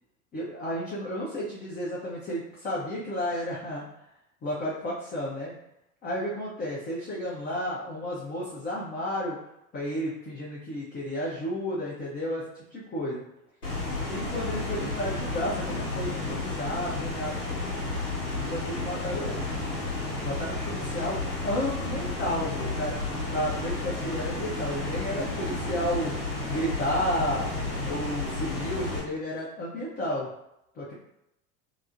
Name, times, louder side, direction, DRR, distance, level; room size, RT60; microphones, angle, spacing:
voice 1, 0.3-3.8 4.4-5.5 6.0-9.4 9.7-12.4 12.7-13.2 14.1-17.4 18.3-19.4 20.2-23.0 23.3-26.1 26.5-27.5 27.9-30.3 30.7-30.9, equal, 20° left, -7 dB, 0.6 m, -32 dB
sound 1, 13.6-29.0, left 2 dB, 90° left, 0.9 m, -32 dB
2.9 x 2.0 x 2.5 m, 0.83 s
figure-of-eight pair, 75°, 47 cm